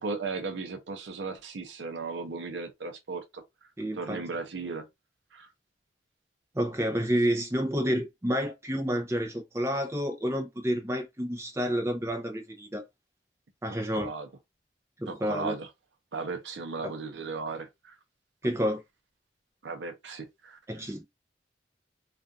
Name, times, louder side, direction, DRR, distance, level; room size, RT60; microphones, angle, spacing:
voice 1, 0.0-3.4 3.9-4.9 5.3-5.5 13.9-14.3 15.1-15.7 16.1-18.0 19.6-20.6, right 4 dB, 85° right, 0.6 m, -36 dB
voice 2, 3.8-4.2 6.5-12.8 13.6-14.1 15.0-15.6 16.8-16.9 18.4-18.8 20.7-21.0, equal, 15° right, 0.5 m, -29 dB
2.4 x 2.4 x 2.5 m
head